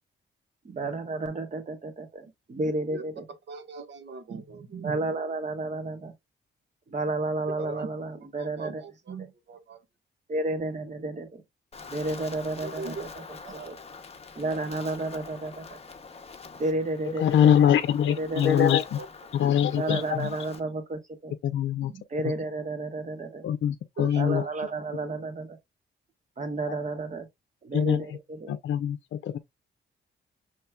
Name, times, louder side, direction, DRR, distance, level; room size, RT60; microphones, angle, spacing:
voice 1, 0.6-3.3 4.8-6.1 6.9-8.8 10.3-11.4 11.8-13.8 14.3-15.8 16.5-17.5 18.1-18.7 19.7-21.3 22.1-23.5 24.1-25.6 26.4-27.3 27.6-28.5, right 2 dB, 40° right, 1.3 m, -32 dB
voice 2, 3.5-5.0 7.6-7.9 8.4-9.8 12.6-13.0 13.4-13.8 19.0-19.1 19.3-19.4 21.8-22.0 24.0-24.5, right 4 dB, 60° right, 1.0 m, -39 dB
Wind, 11.7-20.6, left 5 dB, 30° left, 0.8 m, -45 dB
voice 3, 17.2-19.0 19.3-20.3 21.4-21.9 22.2-22.3 23.4-24.4 27.7-28.1 28.5-29.4, left 9 dB, 70° left, 0.5 m, -23 dB
5.7 x 3.1 x 2.2 m
cardioid pair, 90°, 20 cm